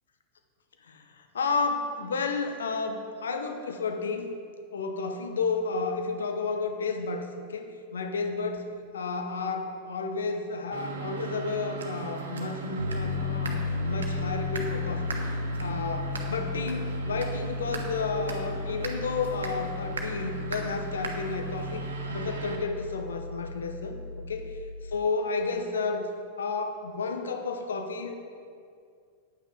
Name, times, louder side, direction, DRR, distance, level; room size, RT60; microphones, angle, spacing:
voice 1, 0.8-4.3 4.7-7.7 7.9-15.1 15.6-21.8 22.1-24.6 24.8-26.1 26.4-28.1, left 4 dB, 65° left, 6 dB, 1.0 m, -32 dB
sound 1, 10.7-22.6, right 5 dB, 70° right, 1.3 m, -37 dB
Piano, 12.8-25.0, left 4 dB, 85° right, 0.5 m, -35 dB
9.4 x 9.0 x 5.0 m, 2.2 s
figure-of-eight pair, 90°, 0 cm